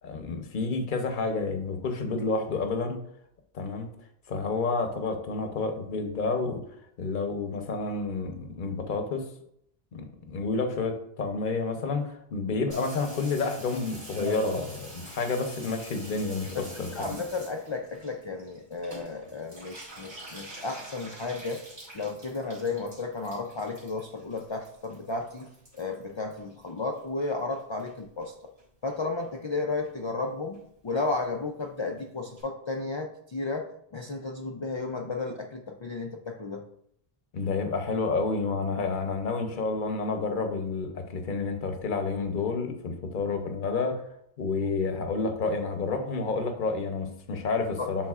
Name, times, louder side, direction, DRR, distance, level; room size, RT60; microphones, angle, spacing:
voice 1, 0.0-3.0 3.5-3.9 4.3-6.6 7.0-9.2 9.9-17.2 37.3-44.0 44.4-48.0, left 4 dB, 55° left, 5 dB, 0.9 m, -30 dB
Water tap faucet / Bathtub (filling or washing), 12.7-27.2 27.5-28.3 28.6-28.7 28.9-29.0 29.2-29.6 29.8-29.9 30.2-30.3 30.5-30.6 30.9-31.0 31.2-31.3 31.6-31.7 32.0-32.1 32.4-32.5, right 1 dB, 90° right, 2.7 m, -44 dB
voice 2, 16.5-21.6 21.9-25.5 25.7-28.5 28.8-33.7 33.9-36.6 47.8-47.9, left 3 dB, 40° left, 2 dB, 0.4 m, -33 dB
10.5 x 3.9 x 2.4 m, 0.72 s
omnidirectional pair, 1.0 m